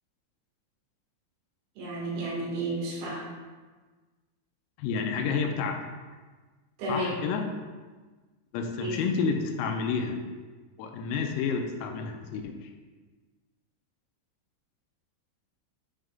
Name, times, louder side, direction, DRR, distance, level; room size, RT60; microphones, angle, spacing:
voice 1, 1.8-3.3 6.8-7.3 8.8-9.0, right 1 dB, 70° right, -5 dB, 4.1 m, -32 dB
voice 2, 4.8-5.9 6.9-7.5 8.5-10.2 10.8-12.7, left 5 dB, 85° left, 4 dB, 3.3 m, -30 dB
12.5 x 5.2 x 2.4 m, 1.3 s
omnidirectional pair, 5.9 m